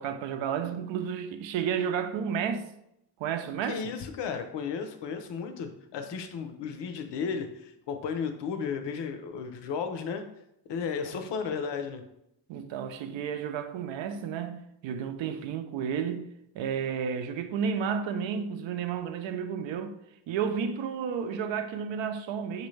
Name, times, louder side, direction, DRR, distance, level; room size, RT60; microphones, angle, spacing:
voice 1, 0.0-2.7 3.2-3.8 12.5-16.3 16.5-20.0 20.3-22.7, right 7 dB, 85° right, 0.6 m, -32 dB
voice 2, 3.6-10.3 10.7-12.0, left 6 dB, 70° left, 0.7 m, -34 dB
6.0 x 2.7 x 3.1 m
cardioid pair, 175°, 44 cm